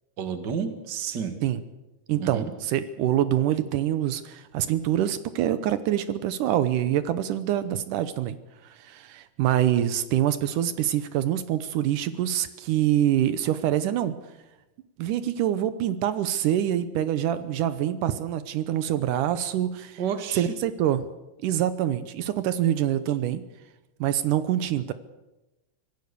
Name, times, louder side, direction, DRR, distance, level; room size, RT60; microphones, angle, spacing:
voice 1, 0.2-1.4 2.2-2.5 20.0-20.5, right 7 dB, 40° right, 8 dB, 2.0 m, -30 dB
voice 2, 2.1-8.4 8.6-14.1 15.0-20.0 20.3-21.1 21.4-23.4 24.0-24.9, right 11 dB, 80° right, 13 dB, 2.4 m, -25 dB
25.5 x 16.5 x 6.9 m, 1.0 s
omnidirectional pair, 3.7 m